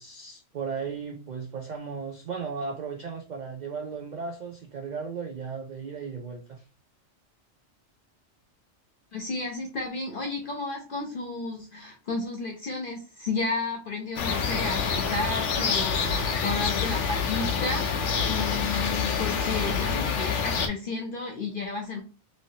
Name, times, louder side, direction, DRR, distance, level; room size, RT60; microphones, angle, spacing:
voice 1, 0.0-6.6, right 5 dB, 55° right, 2 dB, 0.5 m, -36 dB
voice 2, 9.1-22.0, left 3 dB, 55° left, 2 dB, 0.7 m, -32 dB
sound 1, 14.2-20.7, left 6 dB, 85° left, 0.9 m, -27 dB
2.9 x 2.8 x 2.7 m, 0.33 s
omnidirectional pair, 1.2 m